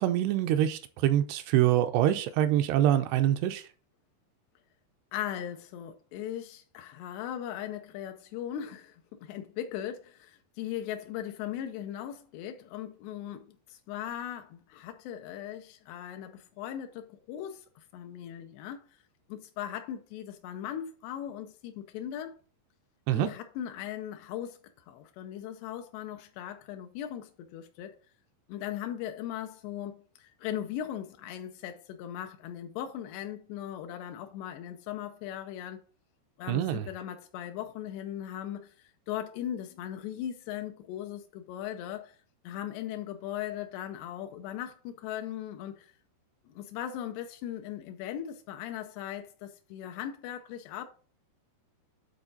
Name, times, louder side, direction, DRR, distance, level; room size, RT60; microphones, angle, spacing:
voice 1, 0.0-3.6 23.1-23.3 36.5-36.9, right 12 dB, 85° right, 2.7 m, -25 dB
voice 2, 5.1-18.9 19.3-22.4 23.1-24.6 24.9-28.0 28.5-35.8 36.4-38.7 39.1-42.2 42.4-45.9 46.5-50.9, left 10 dB, 85° left, 2.8 m, -38 dB
9.8 x 3.9 x 3.8 m
omnidirectional pair, 4.7 m